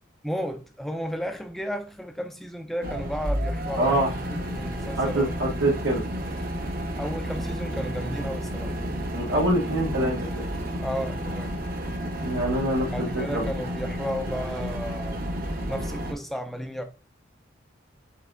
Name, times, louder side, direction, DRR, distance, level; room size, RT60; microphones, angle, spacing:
voice 1, 0.2-5.3 7.0-8.7 10.8-11.5 12.9-15.3 15.7-16.8, equal, ahead, 0.4 m, -33 dB
sound 1, 2.8-16.1, equal, 50° right, 0.7 m, -31 dB
voice 2, 3.8-4.1 5.0-6.0 9.1-10.4 12.2-13.5, right 1 dB, 85° right, 0.9 m, -25 dB
5.6 x 3.4 x 2.4 m
head